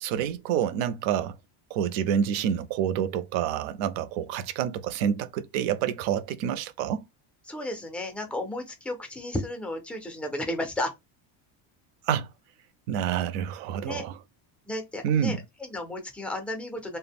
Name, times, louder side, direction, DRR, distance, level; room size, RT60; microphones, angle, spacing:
voice 1, 0.0-1.4 1.7-7.1 12.1-12.3 12.9-14.2 15.0-15.4, right 9 dB, 70° right, 0.5 m, -28 dB
voice 2, 7.5-10.9 13.8-14.0 14.7-17.0, left 1 dB, 5° left, 0.3 m, -33 dB
2.1 x 2.1 x 3.4 m
cardioid pair, 140°, 49 cm